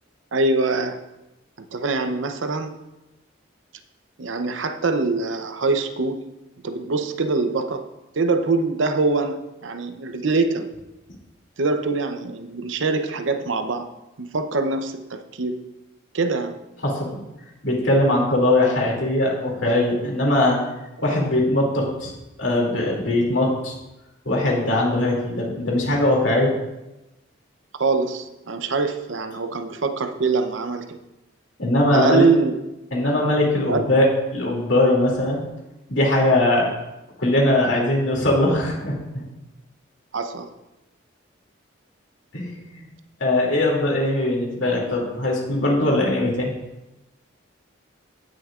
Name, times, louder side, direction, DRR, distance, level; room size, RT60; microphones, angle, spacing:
voice 1, 0.3-1.0 1.6-2.8 4.2-6.3 6.6-7.9 8.1-10.7 11.6-13.9 14.2-15.6 16.1-16.6 27.8-31.0 31.9-32.6 33.7-33.8 40.1-40.5, right 3 dB, 70° right, 8 dB, 0.6 m, -23 dB
voice 2, 16.8-17.2 17.6-20.6 21.0-22.1 22.4-23.7 24.2-26.5 31.6-32.2 32.9-35.4 35.9-36.7 37.2-39.2 42.3-42.8 43.2-46.5, left 1 dB, 65° left, -2 dB, 2.5 m, -20 dB
17.0 x 6.4 x 2.4 m, 0.99 s
head